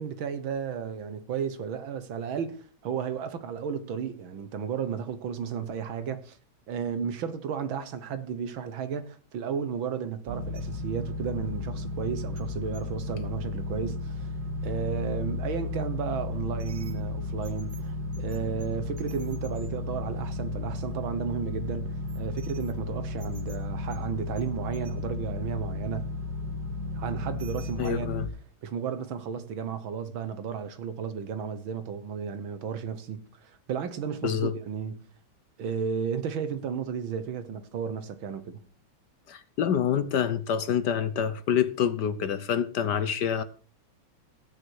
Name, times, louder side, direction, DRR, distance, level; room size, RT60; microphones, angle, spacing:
voice 1, 0.0-6.4 6.7-14.3 14.6-26.1 26.9-28.1 28.6-35.0 35.6-38.6, right 7 dB, 70° right, 1.9 m, -33 dB
sound 1, 10.3-28.3, left 2 dB, 50° right, 2.8 m, -34 dB
voice 2, 27.8-28.3 34.2-34.5 39.3-43.4, left 8 dB, 60° left, 1.2 m, -27 dB
15.5 x 9.7 x 4.7 m
omnidirectional pair, 2.3 m